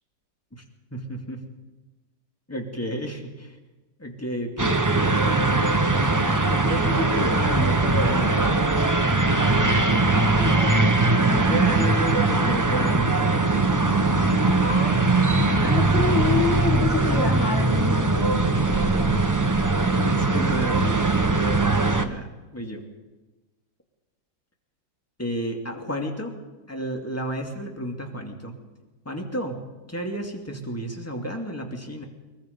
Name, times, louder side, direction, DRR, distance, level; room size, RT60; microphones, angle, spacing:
voice 1, 0.9-1.4 2.5-3.6 4.0-8.5 11.4-13.8 19.8-22.8 25.2-26.4 26.7-28.5 29.0-29.6 29.9-32.1, right 1 dB, 10° left, 2 dB, 2.4 m, -32 dB
sound 1, 4.6-22.0, right 2 dB, 20° right, 0.5 m, -21 dB
voice 2, 9.2-9.9 10.1-11.9 14.4-15.0 15.6-19.3, left 4 dB, 40° left, 2 dB, 1.7 m, -30 dB
22.5 x 22.5 x 5.3 m, 1.2 s
omnidirectional pair, 2.0 m